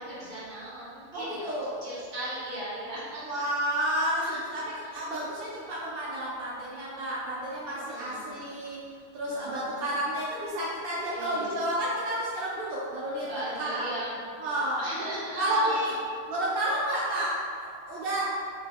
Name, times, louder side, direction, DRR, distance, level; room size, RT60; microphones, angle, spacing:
voice 1, 0.0-1.6 1.8-3.4 4.2-4.4 4.8-5.2 7.9-8.5 9.2-9.8 11.1-11.6 13.2-15.7, right 1 dB, 40° right, -9 dB, 0.8 m, -38 dB
voice 2, 1.1-1.8 3.3-8.8 9.1-13.8 14.4-14.8 15.4-15.9 16.3-18.2, right 1 dB, 70° right, -7 dB, 0.5 m, -30 dB
2.8 x 2.2 x 3.3 m, 2.3 s
omnidirectional pair, 1.5 m